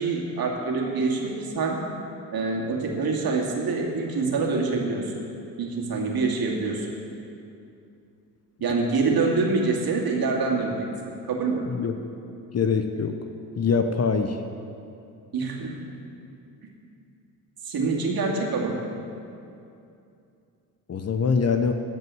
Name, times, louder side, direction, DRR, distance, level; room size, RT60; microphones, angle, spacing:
voice 1, 0.0-1.8 2.3-5.1 5.6-6.9 8.6-10.9 11.3-11.6 15.3-15.9 17.6-18.8, right 4 dB, 45° right, -1 dB, 2.6 m, -25 dB
voice 2, 12.5-13.2 13.6-14.4 20.9-21.7, left 5 dB, 30° left, 7 dB, 0.9 m, -23 dB
15.0 x 5.4 x 9.6 m, 2.6 s
hypercardioid pair, 50°, 48 cm